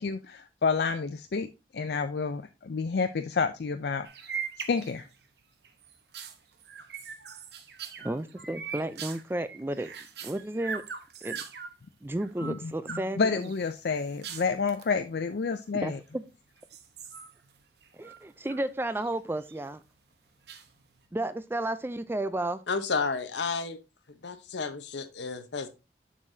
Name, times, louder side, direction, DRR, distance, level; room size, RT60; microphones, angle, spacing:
voice 1, 0.0-1.5 1.7-4.1 4.7-5.1 12.4-16.0, left 5 dB, 65° left, 0.4 m, -29 dB
sound 1, 4.0-5.2 5.6-11.8 12.2-13.1 13.4-14.9 15.7-16.3 16.6-18.7 19.0-19.6 20.5-21.0, right 6 dB, 70° right, 0.9 m, -41 dB
voice 2, 8.0-9.9 10.2-10.8 11.2-11.4 12.0-13.5 15.7-16.2 17.9-19.8 21.1-22.6, right 1 dB, 15° right, 0.4 m, -32 dB
voice 3, 22.7-23.8 24.2-25.7, left 4 dB, 80° left, 0.9 m, -31 dB
7.1 x 6.7 x 2.7 m
head